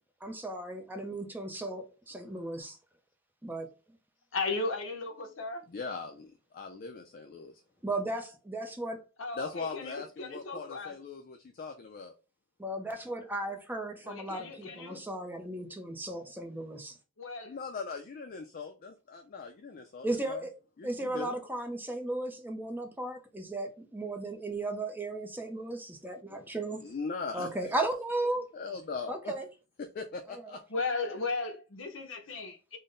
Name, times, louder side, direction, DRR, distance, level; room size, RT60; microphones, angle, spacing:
voice 1, 0.2-2.8 3.4-3.7 7.8-9.0 12.6-17.0 20.0-20.5 20.8-26.9 27.3-28.5 29.1-29.5 30.5-30.6, right 2 dB, 10° right, 0.5 m, -35 dB
voice 2, 4.3-5.6 9.2-10.9 14.0-15.0 17.2-17.6 30.7-32.8, left 3 dB, 65° left, 0.8 m, -36 dB
voice 3, 5.7-7.6 9.3-12.1 17.5-20.5 20.8-21.3 26.8-27.5 28.5-29.3 29.9-30.6, left 4 dB, 45° left, 0.4 m, -40 dB
3.7 x 2.1 x 3.7 m
head